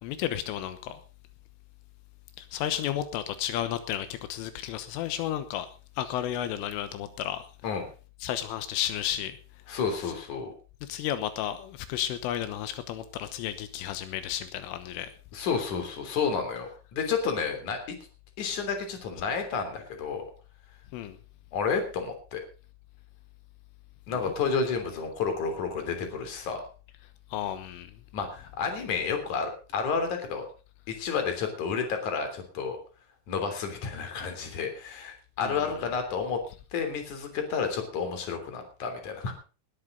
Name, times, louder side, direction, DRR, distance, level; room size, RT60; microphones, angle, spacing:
voice 1, 0.0-1.0 2.4-5.7 6.0-7.7 8.2-9.4 10.0-10.1 10.8-15.1 20.9-21.2 24.1-24.3 27.3-27.9 35.4-35.7, left 11 dB, 85° left, 3.6 m, -33 dB
voice 2, 9.7-10.5 15.3-18.0 18.4-20.2 21.5-22.4 24.1-26.7 28.1-30.5 30.9-32.8 33.3-36.4 36.7-39.3, left 5 dB, 40° left, 4.2 m, -31 dB
20.0 x 11.5 x 3.9 m
omnidirectional pair, 5.6 m